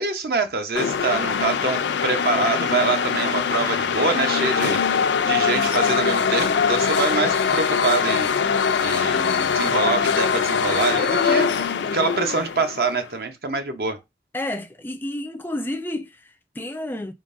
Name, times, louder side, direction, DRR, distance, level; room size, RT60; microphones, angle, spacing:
voice 1, 0.0-4.8 5.3-8.3 8.8-11.5 11.8-14.0, right 3 dB, 60° right, 0.7 m, -25 dB
sound 1, 0.7-13.0, left 6 dB, 85° left, 0.4 m, -22 dB
voice 2, 14.3-17.1, left 1 dB, 10° left, 0.3 m, -30 dB
4.4 x 3.6 x 2.5 m
head